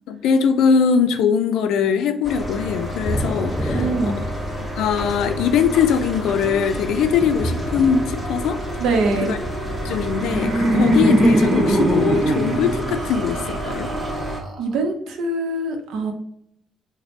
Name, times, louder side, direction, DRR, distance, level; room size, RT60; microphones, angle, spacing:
voice 1, 0.1-4.1 4.8-8.6 9.2-9.4 9.8-13.9, left 6 dB, 85° left, 8 dB, 0.3 m, -21 dB
sound 1, 2.2-14.4, right 1 dB, 5° right, 0.9 m, -30 dB
Thunder / Rain, 3.0-13.0, equal, 20° left, 0.4 m, -32 dB
voice 2, 3.7-4.2 8.8-9.3 14.6-16.1, right 3 dB, 85° right, 4 dB, 0.6 m, -23 dB
Laughter, 9.7-14.7, right 1 dB, 35° right, 0.8 m, -21 dB
3.3 x 2.1 x 3.8 m, 0.73 s
cardioid pair, 90°, 0 cm